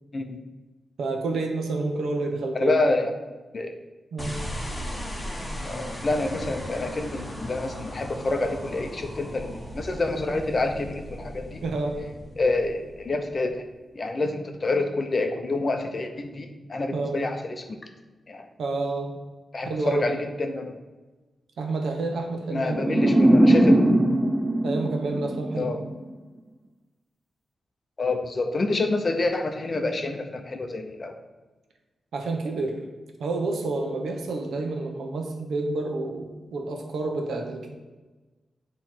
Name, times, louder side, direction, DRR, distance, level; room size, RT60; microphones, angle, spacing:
voice 1, 1.0-2.8 4.1-4.4 11.6-12.0 16.9-17.2 18.6-19.2 19.6-20.0 21.6-23.2 24.6-25.7 32.1-32.8 33.2-37.7, right 3 dB, 85° right, 3 dB, 0.9 m, -29 dB
voice 2, 2.5-3.1 3.5-3.7 5.6-11.6 12.4-13.7 13.9-17.8 18.3-18.4 19.5-20.7 22.5-23.9 25.6-25.8 28.0-31.1, left 2 dB, 35° left, 5 dB, 0.6 m, -27 dB
sound 1, 4.2-13.6, equal, 15° left, 0.9 m, -37 dB
sound 2, 22.7-25.9, right 1 dB, 10° right, 0.3 m, -20 dB
8.2 x 3.1 x 4.4 m, 1.2 s
wide cardioid pair, 155°, 0 cm